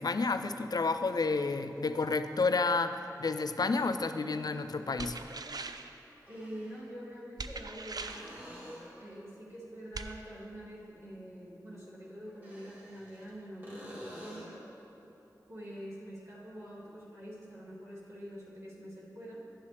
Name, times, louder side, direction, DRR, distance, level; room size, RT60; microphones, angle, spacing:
voice 1, 0.0-5.2, left 3 dB, 65° left, 10 dB, 0.4 m, -30 dB
sound 1, 5.0-6.0 7.4-8.4 9.9-10.1, right 3 dB, 65° right, 0.4 m, -41 dB
sound 2, 6.1-6.9 8.0-9.1 12.3-13.3 13.6-14.7 18.3-18.4, equal, 25° right, 1.9 m, -49 dB
voice 2, 6.3-8.6 9.0-14.6 15.5-19.4, equal, 40° right, -7 dB, 2.0 m, -46 dB
10.5 x 7.2 x 3.3 m, 3.0 s
wide cardioid pair, 50°, 7 cm